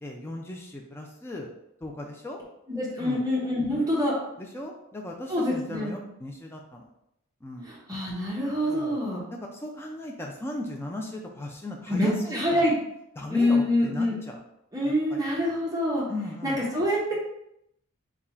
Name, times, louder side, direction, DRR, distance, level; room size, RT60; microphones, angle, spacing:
voice 1, 0.0-1.5 1.8-2.4 3.0-3.2 3.7-3.9 4.4-6.9 7.4-7.7 8.7-9.0 9.3-12.7 13.2-14.4 14.8-15.2 16.1-16.6, left 1 dB, 10° left, 0 dB, 0.4 m, -38 dB
voice 2, 2.7-4.1 5.3-5.9 7.6-9.2 11.9-12.7 13.3-14.1 14.7-16.1 16.4-17.1, left 1 dB, 15° right, -5 dB, 0.9 m, -26 dB
3.7 x 2.3 x 4.3 m, 0.80 s
head